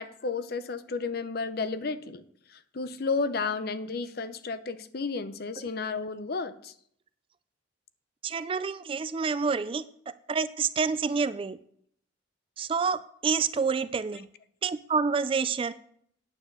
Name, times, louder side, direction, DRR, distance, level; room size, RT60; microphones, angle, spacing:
voice 1, 0.0-2.2 2.5-6.7, left 4 dB, 50° left, 12 dB, 0.6 m, -32 dB
voice 2, 8.2-9.8 10.3-11.6 12.6-14.3 14.6-15.7, right 5 dB, 25° right, 15 dB, 0.3 m, -28 dB
9.3 x 5.3 x 7.9 m, 0.65 s
head